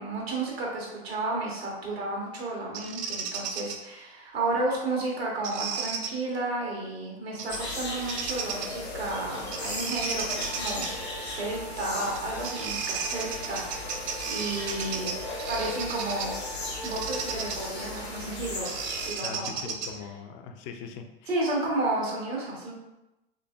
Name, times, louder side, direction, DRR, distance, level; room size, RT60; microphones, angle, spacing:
voice 1, 0.0-10.9 11.2-15.1 15.5-16.3 16.8-19.4 21.3-22.7, right 2 dB, 75° right, -2 dB, 1.2 m, -32 dB
Bird vocalization bird call bird song, 2.7-3.8 5.4-6.1 7.4-7.7 8.0-8.8 9.5-10.9 12.1-12.2 12.4-16.4 16.8-20.1, right 6 dB, 25° right, 0.4 m, -34 dB
sound 1, 7.5-19.1, left 2 dB, 85° left, 0.9 m, -37 dB
sound 2, 10.3-18.0, right 2 dB, 55° right, 0.7 m, -45 dB
voice 2, 19.2-21.3, left 6 dB, 35° left, 5 dB, 0.4 m, -41 dB
3.7 x 3.4 x 2.4 m, 0.96 s
figure-of-eight pair, 85°, 31 cm